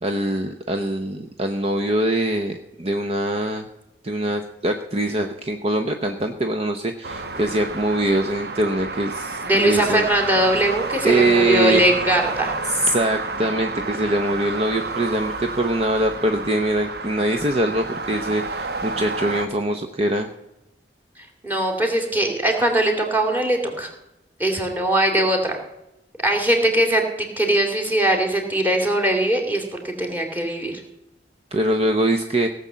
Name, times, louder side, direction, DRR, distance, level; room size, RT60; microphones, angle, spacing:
voice 1, 0.0-3.7 4.0-10.0 11.0-11.8 12.7-20.3 31.5-32.5, right 1 dB, 35° right, 6 dB, 0.8 m, -23 dB
sound 1, 7.0-19.5, right 3 dB, 60° right, 1.1 m, -30 dB
voice 2, 9.4-12.5 21.4-23.9 24.4-25.5 26.2-30.8, right 1 dB, 10° right, 2 dB, 2.5 m, -21 dB
17.0 x 6.8 x 7.4 m, 0.91 s
head